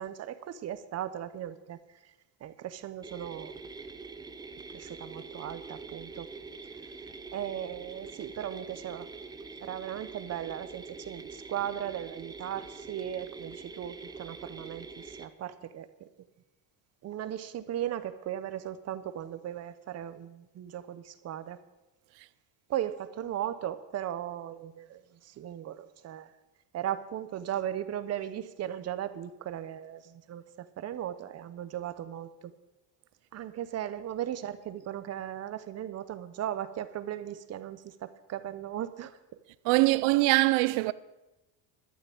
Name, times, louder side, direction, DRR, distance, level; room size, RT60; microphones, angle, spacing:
voice 1, 0.0-1.8 2.4-3.5 4.7-6.3 6.8-6.9 7.3-9.1 9.6-16.1 17.0-21.6 22.7-26.3 26.7-32.5 33.3-39.2, right 11 dB, 35° right, 0.8 m, -37 dB
sound 1, 3.0-15.3, right 4 dB, 10° right, 0.5 m, -45 dB
voice 2, 39.6-40.9, right 20 dB, 70° right, 0.7 m, -23 dB
12.0 x 6.7 x 8.7 m
cardioid pair, 145°, 44 cm